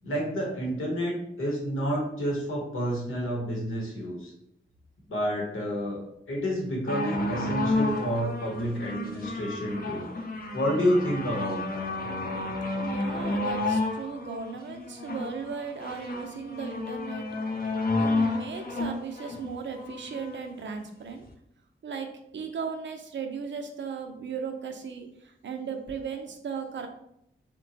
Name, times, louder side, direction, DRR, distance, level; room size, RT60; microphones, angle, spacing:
voice 1, 0.0-4.3 5.1-6.0 6.3-10.1 10.5-11.8, equal, 80° left, -2 dB, 0.9 m, -29 dB
sound 1, 6.9-20.4 21.2-21.3, left 2 dB, 45° left, 0.6 m, -31 dB
voice 2, 12.8-17.2 17.6-17.7 18.0-21.2 21.8-26.9, right 6 dB, 65° right, 5 dB, 0.5 m, -37 dB
2.9 x 2.2 x 2.6 m, 0.76 s
cardioid pair, 40°, 21 cm